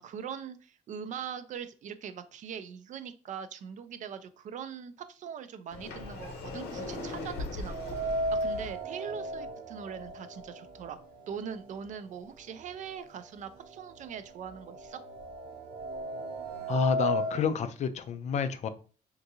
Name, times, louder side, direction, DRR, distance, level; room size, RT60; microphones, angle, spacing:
voice 1, 0.0-11.0 11.3-15.0, right 7 dB, 50° right, 11 dB, 0.4 m, -41 dB
Sliding door, 5.7-8.7, left 3 dB, 80° left, 0.9 m, -39 dB
sound 1, 7.7-11.7 12.1-12.2 13.1-13.2 13.6-17.4, right 1 dB, 75° right, 0.7 m, -35 dB
voice 2, 16.7-18.7, left 6 dB, 45° left, 10 dB, 0.4 m, -29 dB
3.6 x 2.6 x 2.7 m, 0.39 s
cardioid pair, 110°, 17 cm